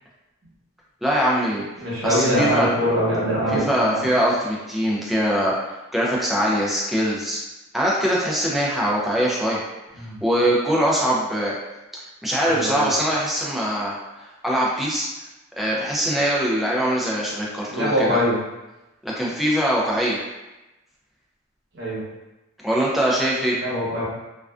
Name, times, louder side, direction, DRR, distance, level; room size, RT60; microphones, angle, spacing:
voice 1, 1.0-1.7 2.0-2.7 3.5-7.4 7.7-9.6 10.2-11.5 12.2-15.1 15.6-18.2 19.0-20.2 22.6-23.5, equal, ahead, -5 dB, 0.4 m, -22 dB
voice 2, 1.8-4.1 10.0-10.2 12.4-12.9 17.7-18.4 21.7-22.0 23.6-24.0, equal, 60° right, -7 dB, 0.9 m, -23 dB
2.4 x 2.2 x 2.3 m, 1.0 s
head